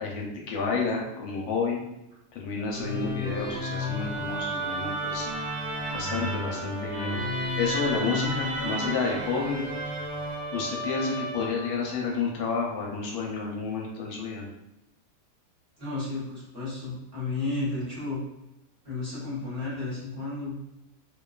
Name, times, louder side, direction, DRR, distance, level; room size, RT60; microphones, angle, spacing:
voice 1, 0.0-1.8 2.3-5.3 5.9-9.6 10.5-14.5, left 4 dB, 80° left, -1 dB, 1.1 m, -30 dB
Musical instrument, 2.7-11.9, equal, 85° right, 1.1 m, -32 dB
voice 2, 15.8-18.2 18.8-20.6, left 3 dB, 40° right, -9 dB, 1.0 m, -33 dB
2.6 x 2.2 x 2.2 m, 0.90 s
omnidirectional pair, 1.6 m